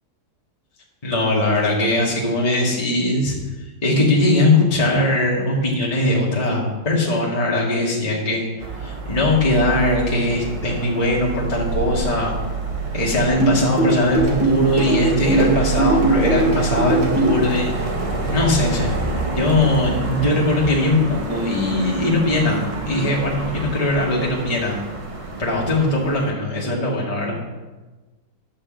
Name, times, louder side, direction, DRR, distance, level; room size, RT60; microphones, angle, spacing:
voice 1, 1.0-3.3 3.8-8.5 8.8-12.3 12.9-17.9 18.3-18.9 19.3-24.8 25.4-27.4, left 1 dB, 20° left, -4 dB, 1.8 m, -20 dB
sound 1, 8.6-26.3, right 4 dB, 25° right, 0.7 m, -27 dB
sound 2, 13.4-17.4, right 2 dB, 75° right, 3.0 m, -19 dB
11.0 x 5.6 x 7.5 m, 1.2 s
omnidirectional pair, 2.1 m